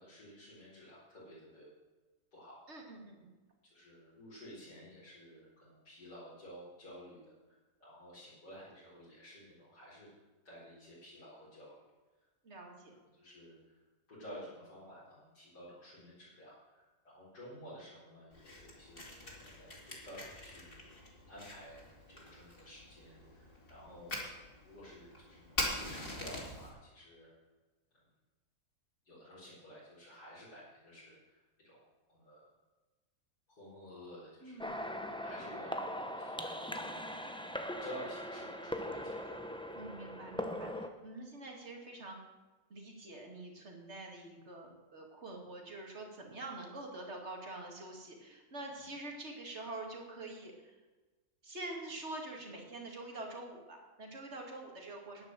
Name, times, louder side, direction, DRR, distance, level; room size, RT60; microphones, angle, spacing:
voice 1, 0.0-1.7 2.3-2.6 3.7-7.2 7.8-10.1 10.4-11.8 13.1-13.8 14.1-20.7 21.3-21.8 22.1-27.3 29.0-32.4 33.5-35.8 36.2-37.4 37.8-39.4 48.8-48.9, equal, 90° left, -12 dB, 5.0 m, -52 dB
voice 2, 2.7-3.3 12.4-12.9 34.4-34.7 39.7-42.2 42.7-50.7 51.4-55.2, right 2 dB, 45° right, 1 dB, 2.6 m, -46 dB
Fire, 18.3-26.7, left 1 dB, 35° left, 2.9 m, -43 dB
sound 1, 34.6-40.9, equal, 5° left, 0.4 m, -40 dB
10.5 x 9.8 x 7.6 m, 1.2 s
omnidirectional pair, 1.7 m